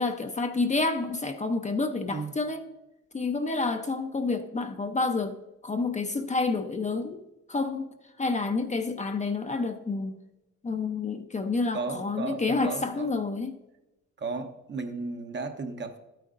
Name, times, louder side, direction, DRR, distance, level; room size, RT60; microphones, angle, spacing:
voice 1, 0.0-2.7 3.1-5.4 5.6-7.2 7.5-7.9 8.2-10.1 10.6-13.6, left 3 dB, 25° left, 0.7 m, -29 dB
voice 2, 11.7-13.1 14.2-16.0, right 3 dB, 40° right, 0.9 m, -34 dB
12.0 x 9.2 x 2.6 m
cardioid pair, 90°, 30 cm